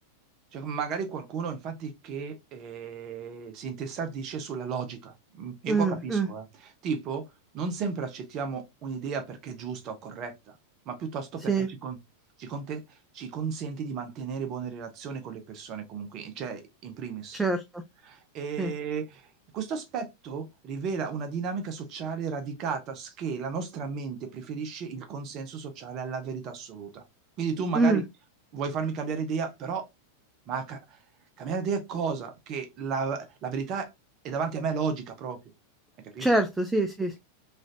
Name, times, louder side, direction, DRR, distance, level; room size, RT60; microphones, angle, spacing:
voice 1, 0.5-6.5 6.8-7.2 7.5-10.5 10.9-12.0 12.4-12.8 13.1-17.4 18.0-19.2 19.5-27.0 27.4-28.0 28.5-29.8 30.5-30.8 31.4-33.9 34.2-35.4 36.1-36.3, right 5 dB, 35° right, 0.7 m, -33 dB
voice 2, 5.7-6.3 11.5-11.7 17.3-17.8 18.6-18.7 27.7-28.0 36.2-37.2, right 3 dB, 5° right, 0.3 m, -25 dB
3.1 x 2.4 x 2.6 m
figure-of-eight pair, 90°, 0 cm